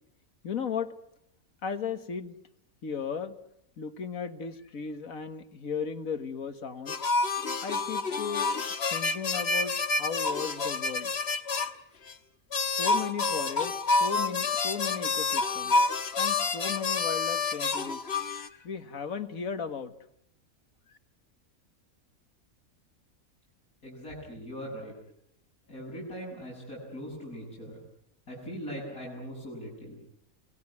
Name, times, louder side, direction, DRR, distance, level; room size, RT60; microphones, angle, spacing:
voice 1, 0.4-0.9 1.6-2.4 2.8-3.3 3.8-7.0 7.6-8.5 8.9-11.1 12.7-15.8 16.2-18.1 18.4-19.9, left 6 dB, 75° left, 10 dB, 2.0 m, -36 dB
sound 1, 6.9-11.7 12.1-12.2 12.5-18.5, left 3 dB, 50° left, 1.5 m, -28 dB
voice 2, 23.8-24.9 25.7-27.8 28.3-30.0, equal, 90° left, -5 dB, 7.8 m, -40 dB
29.0 x 19.5 x 9.6 m, 0.75 s
omnidirectional pair, 1.5 m